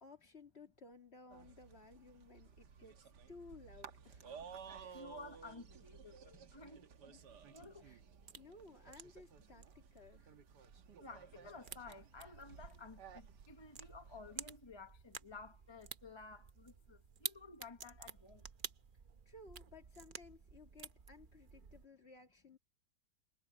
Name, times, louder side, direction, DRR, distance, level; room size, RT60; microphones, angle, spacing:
voice 1, 0.0-4.3 4.8-5.0 7.1-7.5 7.8-8.0 8.4-10.3 19.3-22.6, left 3 dB, 40° left, 2.6 m, -58 dB
sound 1, 1.3-14.6, right 6 dB, 90° right, 1.9 m, -56 dB
voice 2, 4.9-6.8 7.5-7.9 11.0-18.4, left 3 dB, 20° left, 0.8 m, -54 dB
sound 2, 7.2-21.9, right 6 dB, 45° right, 0.7 m, -53 dB
omnidirectional pair, 1.7 m